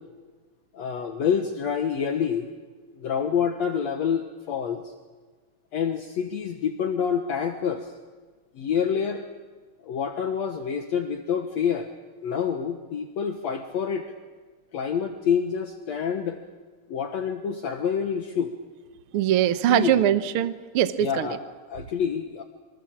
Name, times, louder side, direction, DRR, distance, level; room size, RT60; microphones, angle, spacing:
voice 1, 0.7-2.5 3.0-4.9 5.7-7.9 8.5-9.3 9.8-11.9 12.2-14.1 14.7-16.4 16.9-18.5 19.7-20.1 21.0-22.4, left 7 dB, 65° left, 5 dB, 2.3 m, -27 dB
voice 2, 19.1-21.3, right 11 dB, 70° right, 11 dB, 1.3 m, -22 dB
27.5 x 24.5 x 7.4 m, 1.4 s
omnidirectional pair, 3.7 m